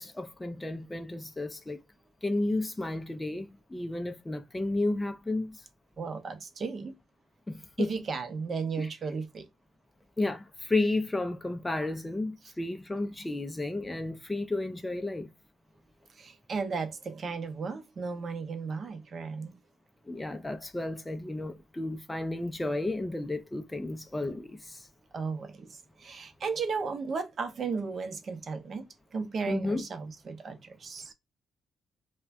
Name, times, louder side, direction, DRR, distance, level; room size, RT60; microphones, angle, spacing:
voice 1, 0.0-1.8 2.2-5.7 7.5-7.9 8.8-8.9 10.2-15.3 20.1-24.9 29.5-29.9, left 2 dB, 15° left, 0.3 m, -32 dB
voice 2, 6.0-6.9 7.8-9.5 12.4-12.5 16.2-19.5 25.1-28.9 29.1-31.1, right 5 dB, 50° right, 0.6 m, -35 dB
2.5 x 2.1 x 3.2 m
cardioid pair, 90°, 0 cm